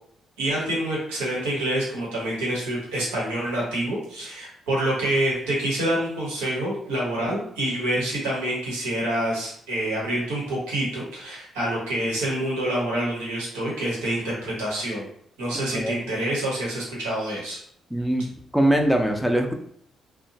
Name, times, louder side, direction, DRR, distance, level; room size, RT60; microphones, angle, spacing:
voice 1, 0.4-15.1 15.4-17.6, right 1 dB, 85° right, -5 dB, 1.1 m, -27 dB
voice 2, 17.9-18.3 18.5-19.5, right 1 dB, 5° right, 3 dB, 0.6 m, -21 dB
2.7 x 2.2 x 2.8 m, 0.66 s
hypercardioid pair, 45°, 0 cm